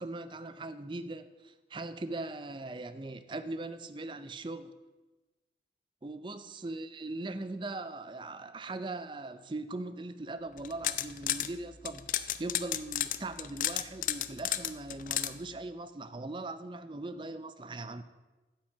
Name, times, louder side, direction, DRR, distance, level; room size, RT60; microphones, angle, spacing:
voice 1, 0.0-4.7 6.0-18.0, right 2 dB, 25° right, 0.5 m, -40 dB
sound 1, 10.6-11.5 11.9-15.3, left 12 dB, 45° left, 0.4 m, -32 dB
10.0 x 5.9 x 7.8 m
head